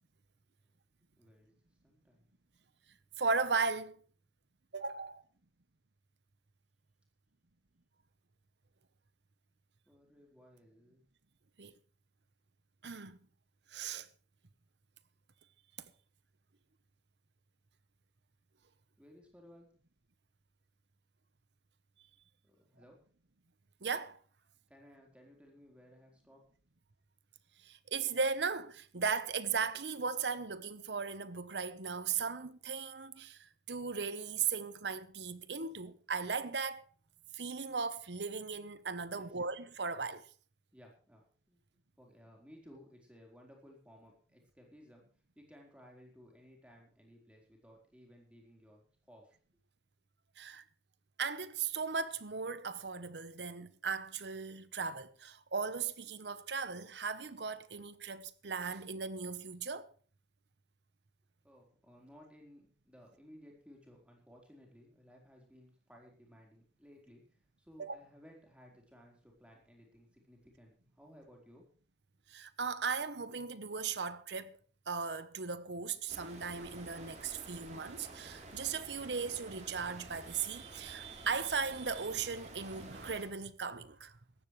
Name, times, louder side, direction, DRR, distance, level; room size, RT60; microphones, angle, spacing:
voice 1, 1.2-2.3 2.8-2.9 9.9-11.0 19.0-19.7 22.4-23.0 24.7-26.5 39.0-39.4 40.7-41.6 42.0-45.1 45.4-49.4 61.4-71.7, equal, 5° right, 4.2 m, -59 dB
voice 2, 3.2-4.0 4.7-5.2 11.6-11.7 12.8-13.2 13.7-14.1 23.8-24.2 27.6-36.8 37.3-40.3 50.4-50.6 51.2-59.9 67.8-68.0 72.3-74.6 74.9-84.2, right 5 dB, 75° right, 1.1 m, -37 dB
sound 1, 76.1-83.3, right 2 dB, 40° right, 3.6 m, -51 dB
18.0 x 14.5 x 3.3 m
head